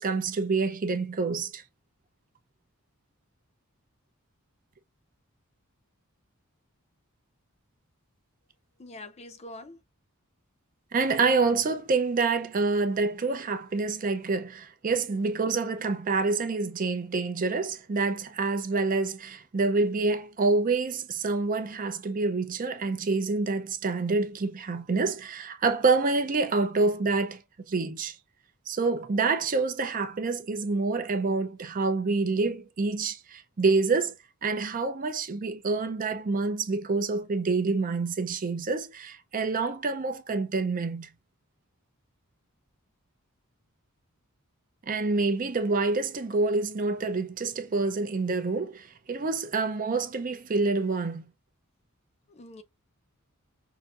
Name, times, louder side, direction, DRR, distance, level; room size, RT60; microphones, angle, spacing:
voice 1, 0.0-1.6 10.9-27.4 27.7-28.2 28.7-34.1 34.4-41.1 44.9-51.3, right 3 dB, 40° right, 0.5 m, -27 dB
voice 2, 8.8-9.8 52.3-52.6, left 2 dB, 30° left, 0.5 m, -44 dB
5.7 x 2.6 x 2.4 m
head